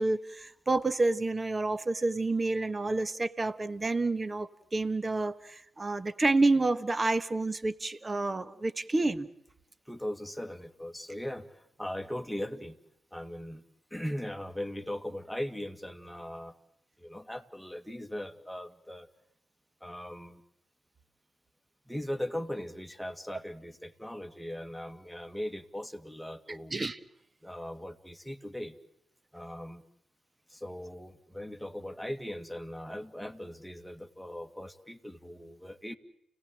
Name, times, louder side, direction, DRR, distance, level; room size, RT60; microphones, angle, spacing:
voice 1, 0.0-9.3 26.7-27.0, right 2 dB, 30° right, 13 dB, 1.5 m, -29 dB
voice 2, 9.9-12.8 13.1-13.6 13.9-16.6 17.0-19.1 19.8-20.4 21.9-26.7 27.4-28.8 29.3-29.8 30.5-36.0, left 1 dB, ahead, 6 dB, 2.2 m, -39 dB
29.5 x 18.5 x 7.8 m, 0.78 s
supercardioid pair, 50°, 0 cm